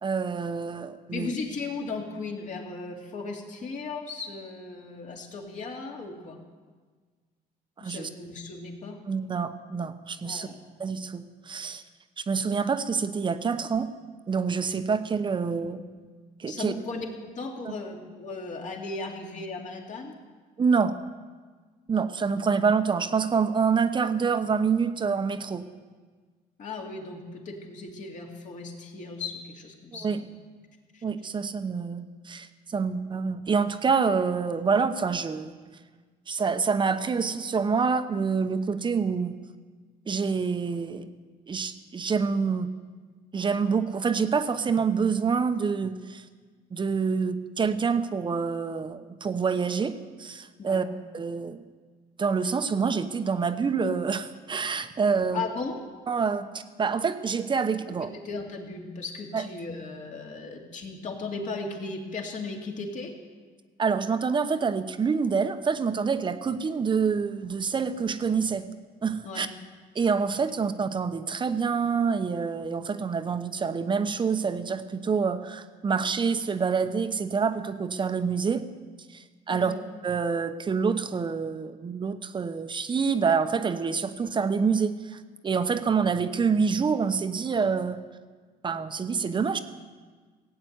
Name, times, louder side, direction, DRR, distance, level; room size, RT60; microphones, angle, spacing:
voice 1, 0.0-1.3 7.8-8.1 9.1-10.5 10.8-11.8 12.2-13.9 14.3-15.8 16.4-16.7 17.6-17.7 20.6-21.0 21.9-25.6 30.0-30.2 31.0-35.6 36.3-39.4 40.1-41.0 41.5-42.7 43.3-46.2 46.7-50.8 51.1-51.6 52.2-55.4 56.1-58.1 59.3-59.4 63.8-68.6 69.0-69.5 69.9-78.7 79.1-79.7 80.0-88.0 88.6-89.6, right 5 dB, 30° right, 9 dB, 0.9 m, -27 dB
voice 2, 1.1-6.4 7.8-9.0 10.2-10.6 16.5-20.1 26.6-30.2 30.9-31.0 50.6-50.9 55.3-55.7 58.1-63.1 69.2-69.5 79.5-79.8, left 3 dB, 50° left, 1 dB, 2.6 m, -36 dB
16.5 x 8.8 x 8.0 m, 1.5 s
cardioid pair, 110°, 17 cm